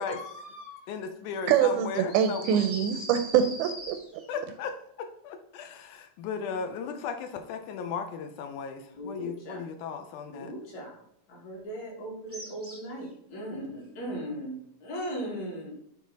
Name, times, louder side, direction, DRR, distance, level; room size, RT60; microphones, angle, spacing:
voice 1, 0.0-0.8 8.9-9.6 10.3-11.0 11.3-15.7, equal, 60° left, -3 dB, 3.1 m, -38 dB
voice 2, 0.9-2.7 4.3-10.5, left 6 dB, 80° left, 6 dB, 2.1 m, -36 dB
voice 3, 1.5-4.0, right 9 dB, 80° right, 8 dB, 1.9 m, -24 dB
sound 1, 2.1-4.4 12.3-13.0, equal, 15° right, 0.4 m, -41 dB
8.4 x 3.9 x 4.0 m, 0.72 s
omnidirectional pair, 3.8 m